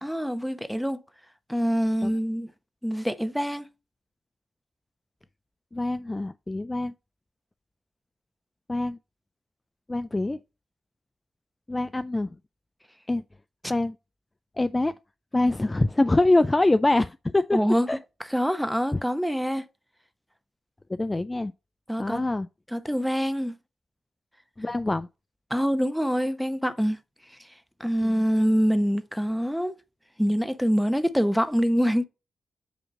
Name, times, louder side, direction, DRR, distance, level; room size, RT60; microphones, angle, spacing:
voice 1, 0.0-1.0 1.5-2.5 2.8-3.7 17.5-17.9 18.3-19.6 21.9-22.2 22.7-23.6 25.5-27.0 27.8-29.7 30.2-32.0, equal, ahead, 0.8 m, -25 dB
voice 2, 5.7-6.9 8.7-9.0 9.9-10.4 11.7-12.3 13.1-13.2 13.7-14.0 14.6-14.9 15.3-17.6 17.9-18.0 18.9-19.0 20.9-21.5 22.0-22.5 24.6-25.1 28.0-28.2, left 2 dB, 25° left, 0.3 m, -24 dB
8.0 x 2.8 x 6.2 m
supercardioid pair, 50°, 0 cm